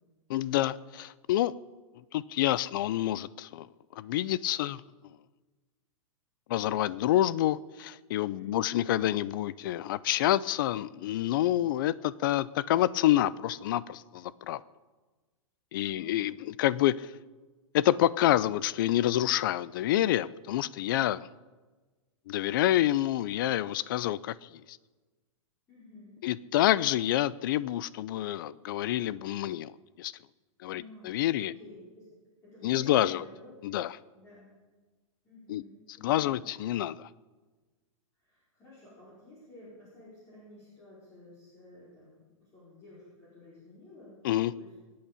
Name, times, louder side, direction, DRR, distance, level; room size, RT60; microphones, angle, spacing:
voice 1, 0.3-1.5 2.1-3.7 4.0-4.8 6.5-14.6 15.7-17.1 17.7-21.3 22.3-24.3 24.7-24.8 26.2-29.7 30.0-30.1 30.6-31.5 32.6-33.2 33.6-33.9 35.5-35.6 36.0-37.1 44.2-44.5, left 13 dB, 40° left, 20 dB, 0.4 m, -28 dB
voice 2, 8.4-8.7 15.7-16.2 25.7-26.2 30.7-32.1 32.4-33.7 34.1-34.5 35.2-36.4 38.2-44.7, left 2 dB, 15° left, -9 dB, 5.0 m, -52 dB
23.0 x 8.6 x 6.8 m, 1.3 s
supercardioid pair, 170°, 17 cm